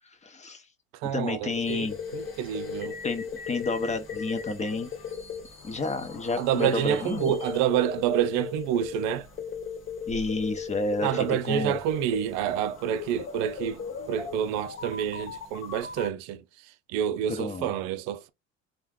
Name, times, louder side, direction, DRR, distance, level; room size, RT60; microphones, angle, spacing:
voice 1, 0.0-0.6 1.1-2.0 3.0-4.9 5.6-7.3 10.1-11.8 17.3-17.7, left 3 dB, 25° left, 0.6 m, -30 dB
voice 2, 1.0-1.9 2.1-2.9 6.4-9.3 11.0-16.4 16.9-18.3, right 10 dB, 75° right, 0.5 m, -28 dB
sound 1, 1.5-16.1, left 6 dB, 45° left, 1.0 m, -37 dB
2.4 x 2.2 x 3.5 m
supercardioid pair, 90°, 29 cm